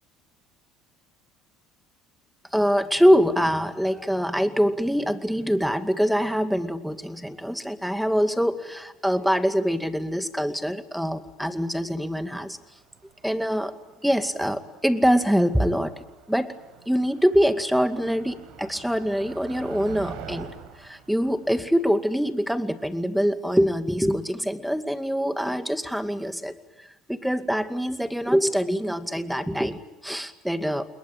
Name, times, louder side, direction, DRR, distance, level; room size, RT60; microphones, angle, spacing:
voice 1, 2.5-12.6 13.2-13.7 14.0-16.5 16.9-20.5 20.8-30.8, equal, ahead, 9 dB, 2.3 m, -24 dB
Motor vehicle (road), 12.3-22.6, right 7 dB, 75° right, 5.4 m, -46 dB
28.5 x 21.5 x 9.0 m, 0.96 s
supercardioid pair, 85°, 0 cm